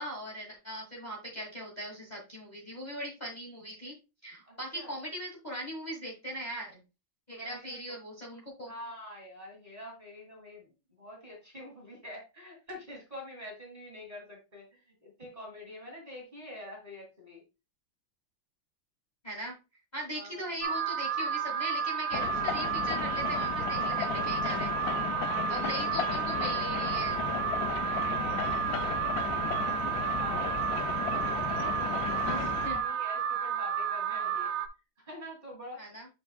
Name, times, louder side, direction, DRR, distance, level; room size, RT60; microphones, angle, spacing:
voice 1, 0.0-3.9 4.2-6.8 7.3-8.7 19.2-19.6 19.9-24.9 25.5-27.2 32.2-32.8 35.8-36.1, equal, 20° left, -3 dB, 1.8 m, -40 dB
voice 2, 4.5-4.9 7.3-8.0 8.7-17.4 20.1-20.7 25.0-26.6 27.7-30.8 31.2-34.5 35.0-35.8, left 1 dB, 20° right, -2 dB, 2.2 m, -46 dB
Alarm, 20.6-34.7, right 8 dB, 85° right, 1.5 m, -32 dB
sound 1, 22.1-32.7, left 9 dB, 80° left, 0.8 m, -35 dB
sound 2, 27.1-32.8, left 1 dB, 5° left, 0.6 m, -46 dB
7.1 x 6.0 x 2.3 m, 0.28 s
omnidirectional pair, 2.3 m